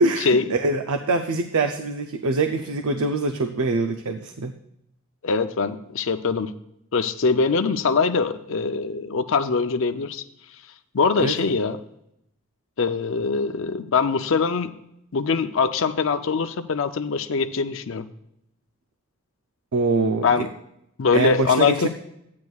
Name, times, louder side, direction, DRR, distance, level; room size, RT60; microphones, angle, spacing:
voice 1, 0.0-4.5 11.2-11.5 19.7-20.5 21.1-21.9, right 3 dB, 90° right, 6 dB, 0.6 m, -24 dB
voice 2, 5.2-6.5 6.9-10.2 10.9-11.8 12.8-14.7 15.1-18.0 20.2-20.5 21.0-21.9, left 4 dB, 65° left, 10 dB, 0.5 m, -22 dB
13.5 x 9.4 x 2.4 m, 0.78 s
head